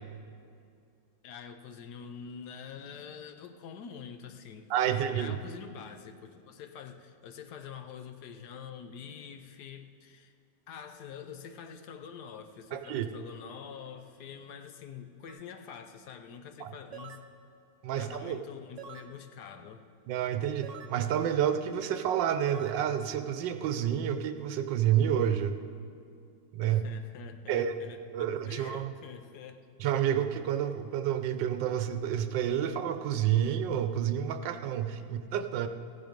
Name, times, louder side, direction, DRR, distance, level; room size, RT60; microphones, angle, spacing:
voice 1, 1.2-10.3 10.7-17.2 17.9-19.8 26.6-29.6 35.0-35.1, left 7 dB, 70° left, 7 dB, 1.2 m, -46 dB
voice 2, 4.7-5.4 12.7-13.1 16.6-16.7 17.8-18.4 20.1-25.6 26.5-26.8 27.5-27.8 28.1-28.9 29.8-35.7, right 10 dB, 85° right, 9 dB, 1.4 m, -29 dB
sound 1, 15.3-15.4 16.9-17.3 18.8-19.1 20.6-21.0 22.5-22.8, right 7 dB, 60° right, 0.8 m, -46 dB
15.5 x 10.0 x 5.2 m, 2.4 s
omnidirectional pair, 1.9 m